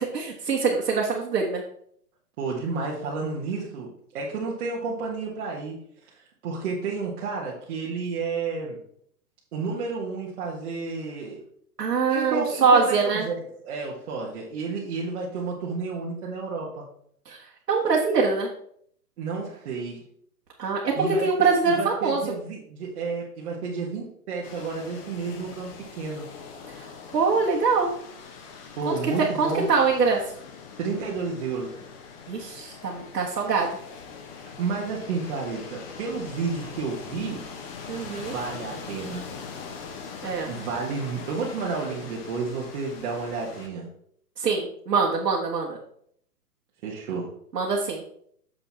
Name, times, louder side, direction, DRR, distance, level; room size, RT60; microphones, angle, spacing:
voice 1, 0.0-1.6 11.8-13.3 17.3-17.4 17.7-18.5 20.6-20.9 21.2-22.2 26.7-26.8 27.1-27.9 28.9-29.0 29.4-30.2 32.3-33.8 37.9-38.3 40.2-40.5 44.4-45.8 47.5-48.0, right 4 dB, 80° right, -3 dB, 1.7 m, -23 dB
voice 2, 2.4-5.7 6.1-8.8 9.5-11.4 12.1-16.8 19.2-20.0 20.6-26.3 28.8-29.7 30.8-31.7 34.4-37.4 38.1-39.3 40.5-43.9 46.8-47.3, right 4 dB, 45° right, -5 dB, 1.7 m, -31 dB
sound 1, 24.4-43.7, left 5 dB, 40° left, 1.3 m, -42 dB
6.9 x 5.6 x 4.2 m, 0.66 s
hypercardioid pair, 140°, 47 cm